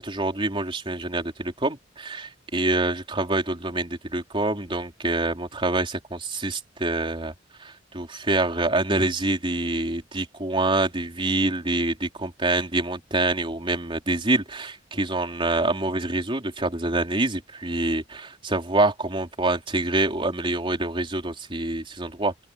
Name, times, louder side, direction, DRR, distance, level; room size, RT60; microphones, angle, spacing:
voice 1, 0.0-7.3 7.6-22.5, right 2 dB, 30° right, 3.8 m, -26 dB
open air
head